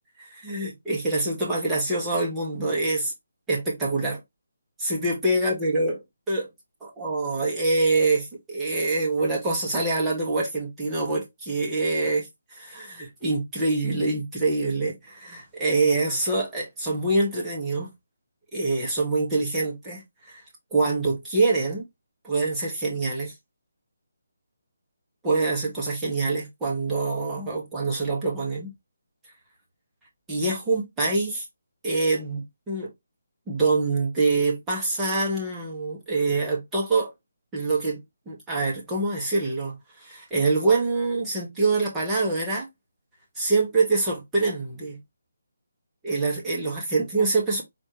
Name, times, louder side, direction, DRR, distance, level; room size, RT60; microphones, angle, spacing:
voice 1, 0.2-3.1 3.5-4.2 4.8-6.0 6.3-6.5 6.8-17.9 18.5-20.4 20.7-21.8 22.2-23.3 25.2-28.7 30.3-31.4 31.8-32.9 33.5-37.1 37.5-42.7 43.4-45.0 46.0-47.6, right 3 dB, 10° right, 1.5 m, -25 dB
4.3 x 3.1 x 3.0 m
figure-of-eight pair, 155°, 0 cm